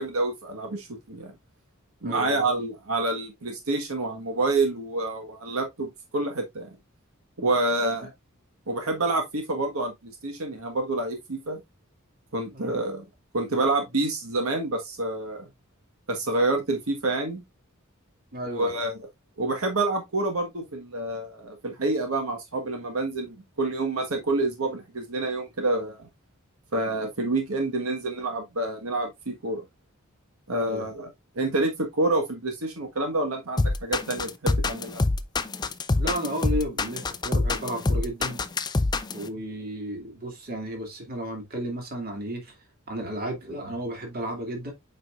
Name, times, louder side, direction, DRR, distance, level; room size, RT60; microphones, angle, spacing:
voice 1, 0.0-1.3 2.0-6.7 7.4-8.1 8.7-11.6 12.3-13.0 13.3-15.5 16.1-17.4 18.4-19.1 19.4-26.1 26.7-29.6 30.5-31.1 31.3-35.0, right 2 dB, 90° right, 1.4 m, -28 dB
voice 2, 2.0-2.4 8.0-8.1 12.5-12.8 18.3-18.8 30.6-30.9 36.0-38.4 39.1-42.6 42.9-44.7, right 1 dB, 45° right, 2.3 m, -33 dB
sound 1, 33.6-39.2, left 3 dB, 20° left, 0.4 m, -25 dB
7.8 x 5.0 x 2.4 m
head